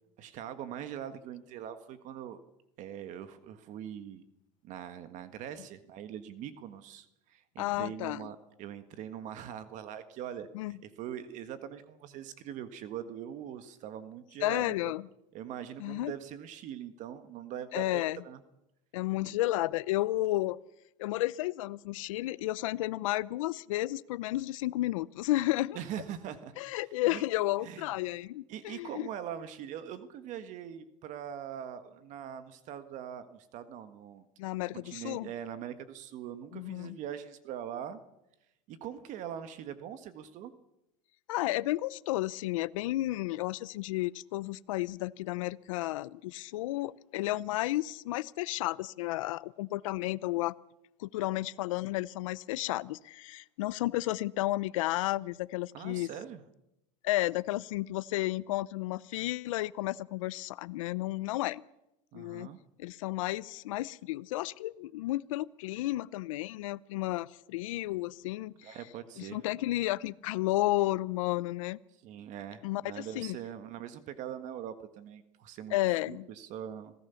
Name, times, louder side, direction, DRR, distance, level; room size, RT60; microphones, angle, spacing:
voice 1, 0.2-2.4 2.8-4.2 4.6-14.9 15.3-18.4 25.7-26.5 27.1-27.2 27.6-27.9 28.5-34.3 34.7-38.0 38.7-40.5 55.7-56.4 62.1-62.6 68.6-69.4 72.0-75.8 76.1-76.9, right 9 dB, 50° right, 11 dB, 1.6 m, -42 dB
voice 2, 7.6-8.3 10.5-10.8 14.4-15.0 15.8-16.1 17.7-18.2 18.9-20.6 21.0-25.8 26.6-29.1 34.4-35.3 36.5-37.0 41.3-50.6 51.0-56.1 57.0-61.6 62.1-62.5 62.8-68.8 69.2-71.8 72.6-73.4 75.7-76.3, left 17 dB, 85° left, 18 dB, 0.7 m, -32 dB
26.5 x 17.0 x 7.1 m, 0.89 s
supercardioid pair, 125°, 16 cm